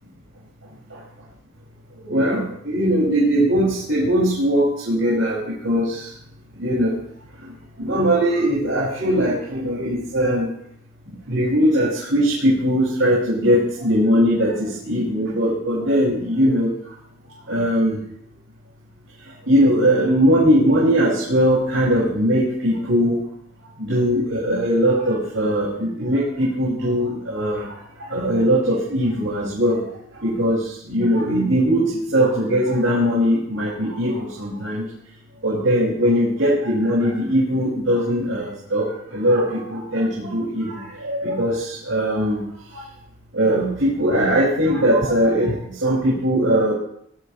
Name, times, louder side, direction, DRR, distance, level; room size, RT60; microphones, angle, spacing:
voice 1, 2.0-6.1 6.5-7.0 7.8-10.5 11.3-16.7 17.5-18.0 19.4-23.2 23.8-29.9 30.2-34.8 35.4-42.4 42.7-42.8 43.3-46.7, equal, 75° right, -6 dB, 5.7 m, -20 dB
20.5 x 13.5 x 3.2 m, 0.67 s
head